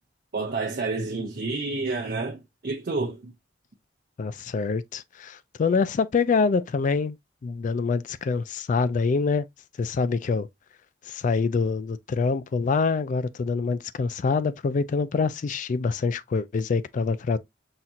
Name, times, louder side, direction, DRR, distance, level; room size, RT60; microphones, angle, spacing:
voice 1, 0.3-3.3, right 3 dB, 55° right, 0.6 m, -29 dB
voice 2, 4.2-7.2 7.4-9.5 9.8-10.5 11.1-17.4, left 4 dB, 45° left, 0.3 m, -25 dB
5.8 x 2.7 x 2.3 m
head